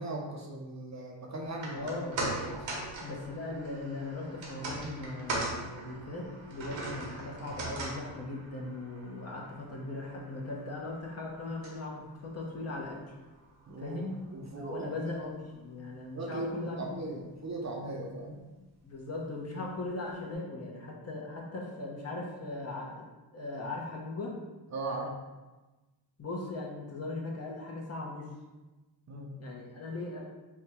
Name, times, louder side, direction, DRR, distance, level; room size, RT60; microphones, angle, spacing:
voice 1, 0.0-1.9 2.4-2.7 13.7-14.0 14.3-14.9 16.1-18.4 24.7-25.1 29.1-29.3, right 2 dB, 40° right, 0 dB, 0.6 m, -38 dB
sound 1, 1.5-13.8 14.2-14.3, right 2 dB, 75° right, 1.1 m, -41 dB
voice 2, 1.7-2.2 3.0-13.0 13.8-14.1 14.6-16.8 18.8-23.1 23.3-24.3 26.2-28.3 29.4-30.2, left 2 dB, 35° left, -3 dB, 0.9 m, -39 dB
3.6 x 2.3 x 4.2 m, 1.2 s
cardioid pair, 80°, 45 cm